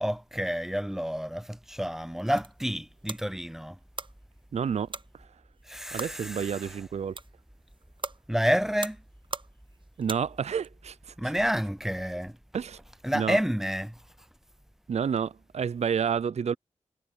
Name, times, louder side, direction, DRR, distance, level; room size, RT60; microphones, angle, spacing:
voice 1, 0.0-3.8 5.7-6.8 8.3-9.0 11.2-12.4 13.0-13.9, equal, 5° right, 0.4 m, -29 dB
sound 1, 2.0-10.7, right 4 dB, 40° right, 0.9 m, -43 dB
voice 2, 4.5-4.9 5.9-7.1 10.0-11.3 12.5-12.8 13.1-13.4 14.9-16.5, right 7 dB, 60° right, 0.5 m, -29 dB
cardioid pair, 50°, 13 cm